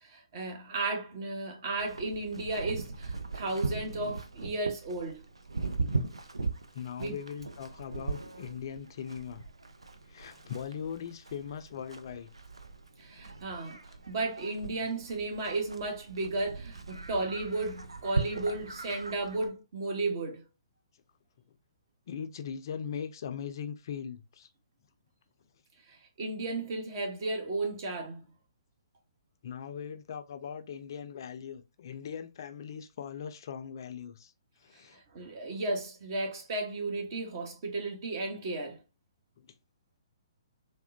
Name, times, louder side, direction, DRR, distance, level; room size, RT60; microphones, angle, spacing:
voice 1, 0.0-5.2 7.0-7.2 13.0-13.8 14.1-20.4 25.9-28.2 34.9-38.8, right 2 dB, 45° right, 0.9 m, -34 dB
Livestock farm animals working animals, 1.8-19.5, right 3 dB, 80° right, 0.5 m, -39 dB
voice 2, 6.7-9.5 10.1-12.3 22.1-24.5 29.4-34.3 34.6-35.0 39.4-39.5, left 7 dB, 50° left, 0.4 m, -40 dB
3.4 x 2.1 x 2.5 m
figure-of-eight pair, 125°, 3 cm